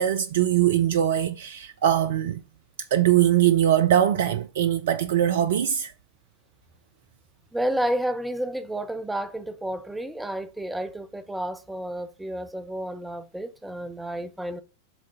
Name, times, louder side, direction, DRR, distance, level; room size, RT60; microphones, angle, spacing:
voice 1, 0.0-2.4 2.9-5.9, right 11 dB, 60° right, 0.4 m, -21 dB
voice 2, 7.5-14.6, right 1 dB, 5° right, 0.7 m, -31 dB
7.2 x 3.8 x 5.4 m
figure-of-eight pair, 90°, 0 cm